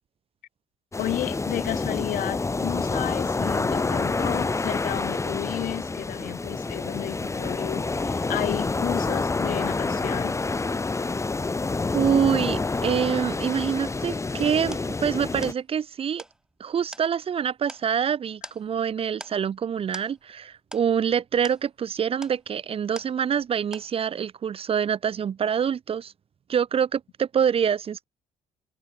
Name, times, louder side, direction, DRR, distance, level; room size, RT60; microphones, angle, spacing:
sound 1, 0.9-15.5, left 3 dB, 20° left, 1.8 m, -28 dB
voice 1, 1.0-10.4, left 13 dB, 70° left, 3.6 m, -32 dB
voice 2, 11.9-16.2 16.6-26.1 26.5-28.0, right 8 dB, 40° right, 0.7 m, -26 dB
sound 2, 14.7-23.5 23.7-24.3, right 1 dB, 5° right, 4.1 m, -46 dB
open air
cardioid pair, 90°, 15 cm